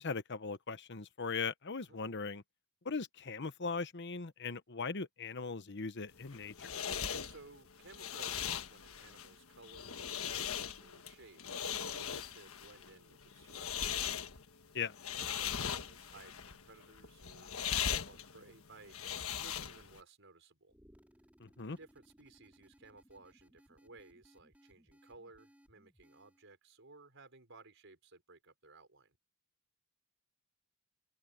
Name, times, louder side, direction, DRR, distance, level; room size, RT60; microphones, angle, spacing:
voice 1, 0.0-2.4 2.8-6.7 14.7-15.0 21.4-21.8, left 4 dB, 55° left, 1.1 m, -39 dB
sound 1, 6.1-20.0, left 8 dB, 80° left, 1.4 m, -39 dB
voice 2, 7.2-11.6 11.9-14.1 15.1-20.8 21.8-29.2, right 3 dB, 60° right, 5.5 m, -58 dB
sound 2, 20.7-26.5, equal, 5° right, 4.6 m, -66 dB
open air
head